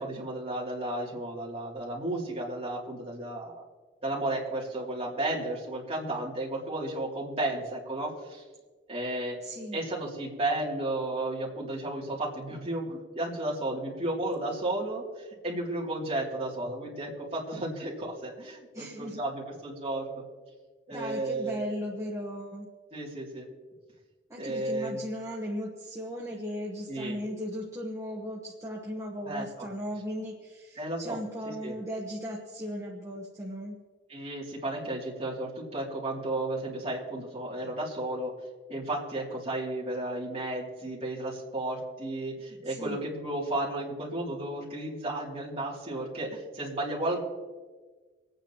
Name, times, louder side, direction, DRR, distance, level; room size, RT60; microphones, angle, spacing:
voice 1, 0.0-3.6 4.0-8.4 8.9-9.4 9.7-20.2 20.9-21.6 22.9-23.5 24.4-25.0 26.9-27.2 29.2-29.4 30.7-31.2 31.5-31.7 34.1-38.3 38.7-47.2, right 1 dB, 30° right, -4 dB, 2.8 m, -33 dB
voice 2, 9.4-9.8 18.7-19.2 20.9-22.7 24.3-33.8 42.6-43.0, equal, 15° right, -2 dB, 1.1 m, -37 dB
27.5 x 9.1 x 3.0 m, 1.4 s
head